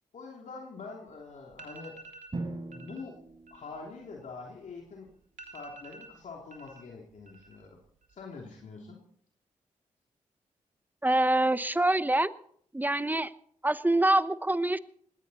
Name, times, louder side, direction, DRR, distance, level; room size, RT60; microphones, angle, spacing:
voice 1, 0.1-2.0 2.7-3.2 3.5-5.1 5.5-7.8 8.1-9.0, left 4 dB, 65° left, -1 dB, 3.1 m, -44 dB
sound 1, 1.1-1.2 1.5-2.4 2.7-3.0 3.3-4.8 5.1-5.2 5.4-6.8 7.1-7.7 8.0-8.6, right 3 dB, 70° right, 2.7 m, -50 dB
Drum, 2.3-4.3, right 2 dB, 40° right, 6.2 m, -40 dB
voice 2, 11.0-12.3 12.7-13.3 13.6-14.8, right 1 dB, 15° right, 15 dB, 1.0 m, -25 dB
19.5 x 16.5 x 4.2 m, 0.63 s
supercardioid pair, 45°, 13 cm